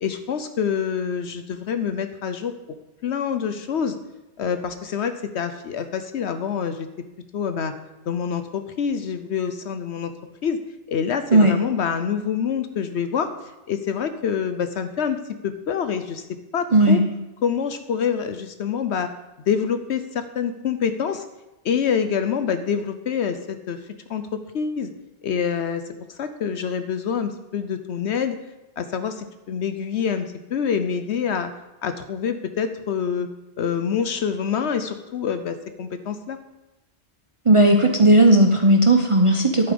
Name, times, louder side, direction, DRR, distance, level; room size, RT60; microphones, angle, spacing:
voice 1, 0.0-2.5 3.0-4.0 4.4-6.9 7.3-7.7 8.1-10.1 10.4-10.6 10.9-13.3 13.7-16.2 16.5-17.0 17.4-19.1 19.5-21.2 21.6-23.8 24.1-24.9 25.2-25.8 26.2-28.4 28.8-31.5 31.8-33.3 33.6-36.4, left 7 dB, 70° left, 9 dB, 1.0 m, -26 dB
voice 2, 37.5-39.7, right 1 dB, 30° right, 3 dB, 0.8 m, -15 dB
11.0 x 8.9 x 5.2 m, 0.97 s
omnidirectional pair, 1.2 m